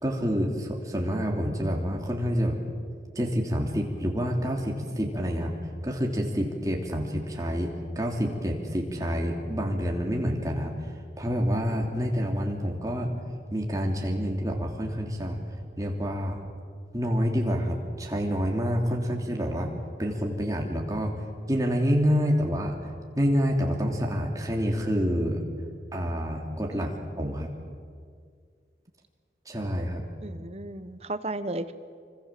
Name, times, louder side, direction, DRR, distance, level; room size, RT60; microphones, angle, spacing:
voice 1, 0.0-2.6 3.1-5.5 5.8-10.7 11.2-13.2 13.5-15.4 15.8-16.4 16.9-19.7 20.0-21.1 21.5-22.7 23.1-25.4 25.9-27.5 29.5-30.0, equal, 20° right, 0 dB, 3.2 m, -27 dB
voice 2, 30.2-31.7, right 2 dB, 35° right, 11 dB, 1.0 m, -34 dB
25.5 x 25.0 x 7.6 m, 2.1 s
head